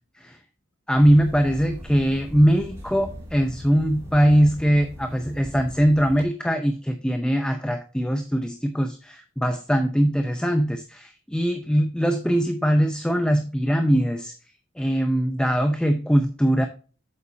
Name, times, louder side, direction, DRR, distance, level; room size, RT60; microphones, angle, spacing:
voice 1, 0.9-14.3 14.8-16.7, equal, 5° left, 6 dB, 0.6 m, -21 dB
sound 1, 0.9-6.2, equal, 15° right, 2.5 m, -40 dB
8.3 x 7.4 x 2.7 m, 0.36 s
head